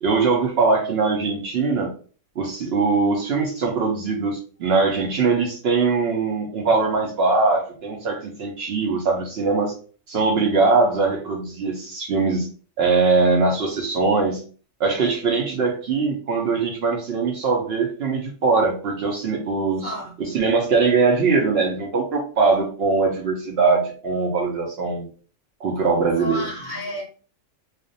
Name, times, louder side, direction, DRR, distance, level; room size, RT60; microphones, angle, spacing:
voice 1, 0.0-1.9 2.4-9.7 10.1-12.5 12.8-14.4 14.8-19.9 20.2-25.1 25.6-26.4, right 4 dB, 65° right, 0.7 m, -21 dB
voice 2, 19.8-20.1 26.2-27.0, equal, 70° left, 0.4 m, -31 dB
2.4 x 2.1 x 2.6 m
omnidirectional pair, 1.4 m